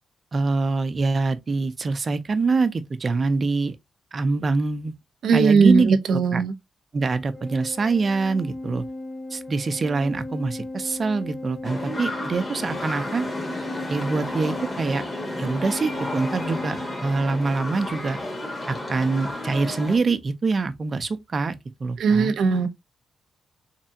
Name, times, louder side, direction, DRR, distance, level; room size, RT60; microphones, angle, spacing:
voice 1, 0.3-3.7 4.1-4.9 5.3-6.4 6.9-8.8 9.3-13.2 13.9-15.0 15.4-18.2 18.7-22.3, right 3 dB, 35° right, 0.5 m, -25 dB
voice 2, 5.2-6.5 22.0-22.7, right 5 dB, 80° right, 0.7 m, -18 dB
Organ, 7.3-18.1, left 2 dB, 5° left, 0.7 m, -37 dB
sound 1, 11.6-20.0, left 1 dB, 30° left, 1.3 m, -32 dB
3.6 x 3.3 x 2.7 m
cardioid pair, 120°, 0 cm